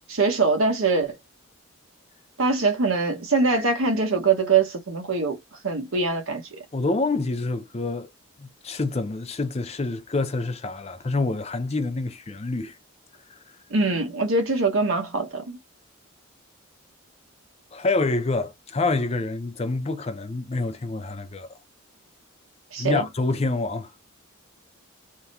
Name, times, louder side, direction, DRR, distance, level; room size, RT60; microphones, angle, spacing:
voice 1, 0.1-1.2 2.4-5.4 5.6-6.4 13.7-15.6 22.7-23.1, right 4 dB, 70° right, 1.0 m, -23 dB
voice 2, 6.7-8.1 8.4-12.7 17.7-21.6 22.8-23.9, left 3 dB, 30° left, 0.5 m, -27 dB
3.5 x 2.2 x 2.8 m
head